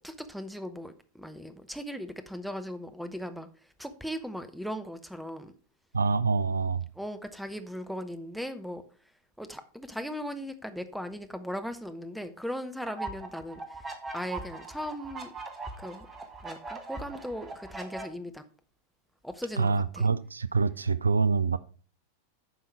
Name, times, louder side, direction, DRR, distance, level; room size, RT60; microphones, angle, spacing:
voice 1, 0.0-3.5 3.8-5.5 6.9-8.8 9.4-13.8 14.1-15.3 15.8-16.1 16.4-18.4 19.2-20.1, equal, ahead, 0.8 m, -38 dB
voice 2, 5.9-6.9 19.6-21.6, right 4 dB, 75° right, 0.4 m, -26 dB
sound 1, 12.9-18.0, right 3 dB, 15° right, 1.4 m, -40 dB
9.4 x 5.7 x 4.6 m
figure-of-eight pair, 90°, 0 cm